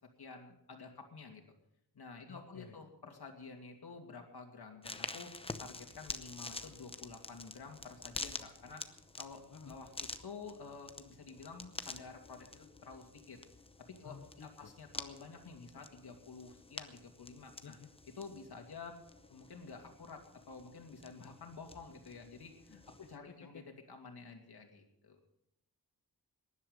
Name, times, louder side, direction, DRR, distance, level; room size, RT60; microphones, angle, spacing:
voice 1, 0.2-1.4 1.9-5.3 5.6-8.8 9.2-13.4 13.9-17.8 18.2-19.0 19.3-25.2, left 4 dB, 70° left, 3 dB, 2.6 m, -50 dB
voice 2, 2.3-2.8 9.5-9.8 14.0-14.7 17.6-17.9 23.0-23.1 23.5-23.6, left 5 dB, 50° left, 4 dB, 1.1 m, -53 dB
sound 1, 4.8-23.2, left 2 dB, 15° left, 0.8 m, -48 dB
19.0 x 11.0 x 5.4 m, 0.78 s
wide cardioid pair, 155°, 39 cm